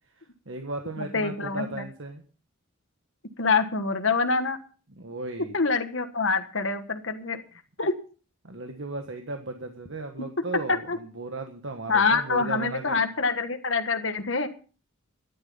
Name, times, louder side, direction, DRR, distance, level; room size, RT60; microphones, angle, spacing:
voice 1, 0.5-2.2 5.0-5.5 8.4-13.0, right 2 dB, 60° right, 5 dB, 1.4 m, -36 dB
voice 2, 1.0-1.8 3.4-4.6 5.5-7.4 7.8-7.9 10.7-11.0 11.9-14.5, left 4 dB, 60° left, 7 dB, 1.4 m, -25 dB
13.5 x 11.0 x 5.6 m, 0.38 s
head